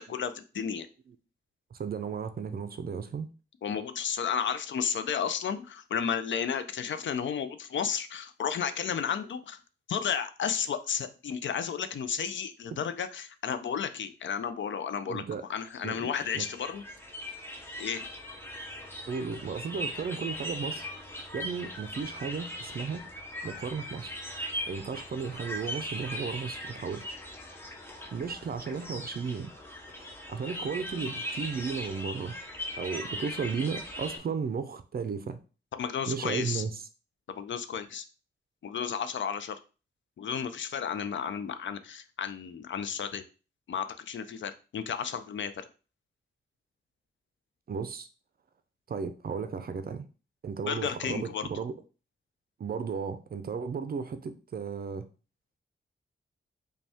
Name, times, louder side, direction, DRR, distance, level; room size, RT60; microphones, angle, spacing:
voice 1, 0.1-0.9 3.6-9.6 9.9-15.2 15.5-16.8 17.8-18.1 35.7-36.6 37.3-38.0 38.6-39.6 40.2-43.2 43.7-45.6 50.6-51.5, left 7 dB, 75° left, 0.4 m, -33 dB
voice 2, 1.7-3.3 15.1-15.4 15.8-16.1 16.3-16.5 19.1-23.0 23.4-24.1 24.7-27.2 28.1-29.5 29.9-32.3 32.8-35.4 36.1-36.8 47.7-48.1 48.9-50.1 50.4-51.7 52.6-55.1, right 5 dB, 50° right, 0.4 m, -34 dB
sound 1, 15.6-34.2, equal, 10° left, 0.6 m, -40 dB
5.1 x 2.2 x 3.5 m
wide cardioid pair, 175°, 20 cm